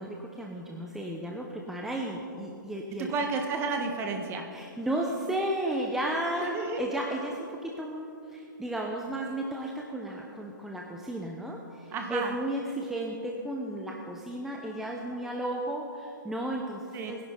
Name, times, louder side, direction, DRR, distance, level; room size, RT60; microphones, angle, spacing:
voice 1, 0.0-3.1 4.5-17.2, right 1 dB, 5° right, -1 dB, 0.9 m, -34 dB
voice 2, 3.1-4.5 6.4-6.8 11.9-12.3 16.9-17.1, right 4 dB, 20° right, 4 dB, 1.5 m, -31 dB
21.5 x 11.0 x 4.0 m, 2.7 s
figure-of-eight pair, 125°, 11 cm